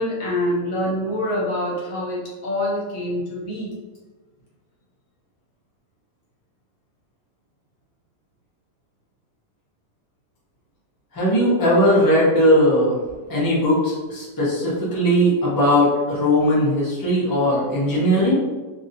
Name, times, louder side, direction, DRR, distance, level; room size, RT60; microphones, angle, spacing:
voice 1, 0.0-3.7, left 1 dB, 60° left, -5 dB, 1.1 m, -25 dB
voice 2, 11.1-13.0 13.3-18.4, equal, 20° left, -7 dB, 0.5 m, -18 dB
2.9 x 2.7 x 2.6 m, 1.3 s
omnidirectional pair, 1.8 m